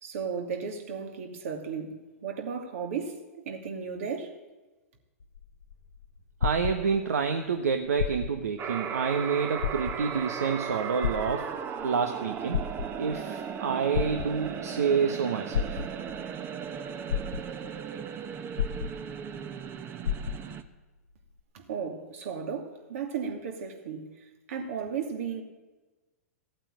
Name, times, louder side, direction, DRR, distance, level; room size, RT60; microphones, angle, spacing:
voice 1, 0.0-4.4 21.5-25.4, right 6 dB, 65° right, 2.7 m, -35 dB
sound 1, 5.2-7.3 7.9-8.6 9.0-9.1 9.6-10.3 11.0-11.8 12.3-13.2 13.9-14.7 15.5-16.2 16.7-16.8 17.1-17.8 18.6-19.4 19.6-19.7 20.0-20.7 21.4-21.5, left 8 dB, 80° left, 0.7 m, -31 dB
voice 2, 6.4-11.5 11.8-12.6 13.0-15.9, right 6 dB, 80° right, 1.2 m, -28 dB
sound 2, 8.6-20.6, right 7 dB, 25° right, 1.0 m, -36 dB
15.5 x 8.8 x 9.2 m
hypercardioid pair, 115°, 8 cm